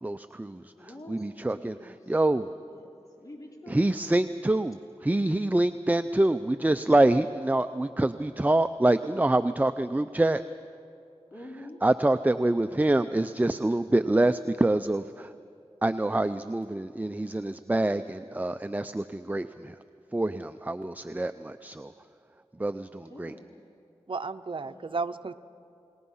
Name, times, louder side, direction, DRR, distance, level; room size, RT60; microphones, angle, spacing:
voice 1, 0.0-2.5 3.7-10.4 11.8-15.3 15.8-19.7 20.1-21.9 22.6-23.3, right 1 dB, 15° right, 11 dB, 0.5 m, -26 dB
voice 2, 0.7-2.0 2.7-4.0 11.3-11.8 23.1-23.5 24.6-25.0, left 1 dB, 35° left, -1 dB, 3.1 m, -47 dB
voice 3, 24.1-25.3, right 4 dB, 50° right, 9 dB, 0.7 m, -33 dB
29.5 x 19.5 x 5.6 m, 2.6 s
wide cardioid pair, 50°, 11 cm